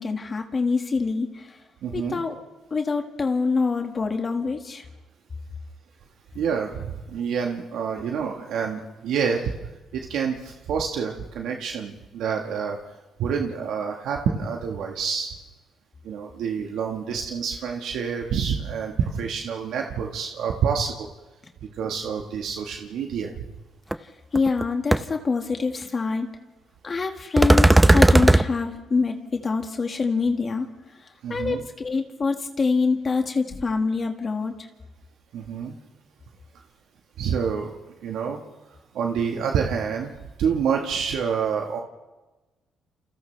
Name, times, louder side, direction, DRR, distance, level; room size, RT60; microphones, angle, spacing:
voice 1, 0.0-1.6 1.9-2.4 2.7-4.9 8.0-8.1 24.0-26.3 26.8-30.7 31.3-34.5, left 4 dB, 35° left, 4 dB, 1.9 m, -25 dB
voice 2, 1.8-2.2 6.3-9.5 9.9-12.8 13.2-15.3 16.0-21.1 21.8-23.4 31.2-31.6 35.3-35.7 37.2-38.4 38.9-40.1 40.4-41.8, right 6 dB, 80° right, 1 dB, 1.6 m, -27 dB
sound 1, 23.9-24.0 24.4-24.6 24.9-25.0 27.4-28.4, right 1 dB, 10° right, 0.7 m, -15 dB
29.0 x 27.5 x 3.4 m, 1.1 s
cardioid pair, 90°, 0 cm